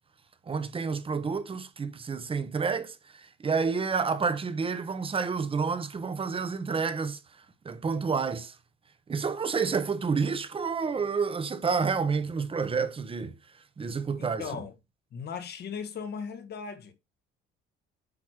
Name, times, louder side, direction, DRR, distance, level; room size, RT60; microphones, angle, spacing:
voice 1, 0.5-7.2 7.6-8.5 9.1-13.3 13.8-14.5, right 5 dB, 25° right, 0.9 m, -29 dB
voice 2, 14.2-14.7 15.1-16.9, left 6 dB, 55° left, 1.3 m, -37 dB
8.7 x 2.9 x 6.3 m
cardioid pair, 110°, 20 cm